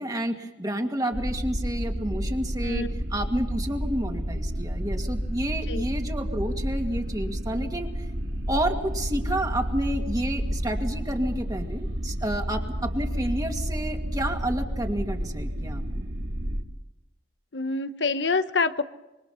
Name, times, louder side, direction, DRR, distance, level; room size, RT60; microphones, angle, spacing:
voice 1, 0.0-7.9 8.5-16.1, right 1 dB, 20° right, 3 dB, 2.2 m, -30 dB
sound 1, 1.1-16.6, equal, 65° right, 2.3 m, -30 dB
voice 2, 17.5-18.8, left 3 dB, 85° left, 11 dB, 1.1 m, -26 dB
26.5 x 23.0 x 5.7 m, 1.0 s
head